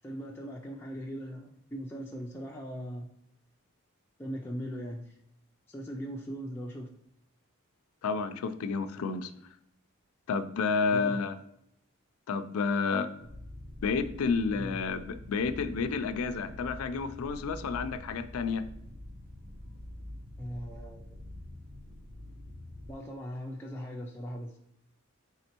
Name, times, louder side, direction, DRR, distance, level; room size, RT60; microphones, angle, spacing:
voice 1, 0.0-3.1 4.2-5.2 5.7-6.9 10.9-11.2 14.5-14.8 20.4-21.0 22.9-24.6, equal, 10° left, -2 dB, 0.3 m, -39 dB
voice 2, 8.0-9.3 10.3-11.3 12.3-13.1 13.8-18.6, left 5 dB, 90° left, 11 dB, 0.4 m, -30 dB
sound 1, 13.2-22.9, left 1 dB, 60° right, 0.9 m, -46 dB
4.3 x 3.6 x 2.9 m, 0.75 s
head